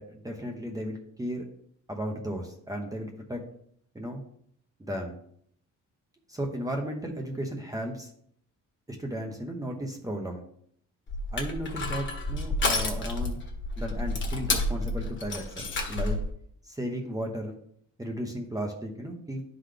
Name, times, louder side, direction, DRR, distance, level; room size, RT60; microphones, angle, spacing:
voice 1, 0.0-1.5 1.9-3.4 3.9-4.2 4.8-5.2 6.3-8.1 9.0-10.4 11.3-13.4 13.8-16.2 16.6-17.6 18.0-19.4, equal, 10° right, 1 dB, 0.9 m, -35 dB
Crushing, 11.1-16.3, left 2 dB, 35° left, 1.4 m, -30 dB
11.5 x 3.9 x 3.3 m, 0.65 s
cardioid pair, 140°, 32 cm